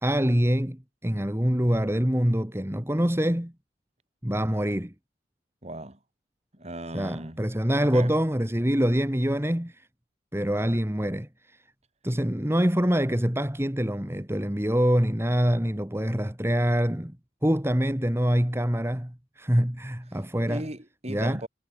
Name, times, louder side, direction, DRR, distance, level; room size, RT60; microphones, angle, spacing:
voice 1, 0.0-3.5 4.2-4.9 6.9-9.9 10.3-11.6 12.0-17.2 17.4-20.6 21.1-21.4, equal, 15° right, 2.1 m, -25 dB
voice 2, 5.6-6.0 6.5-7.4 7.8-8.2 20.1-20.2 20.5-21.5, right 1 dB, 35° right, 3.8 m, -37 dB
head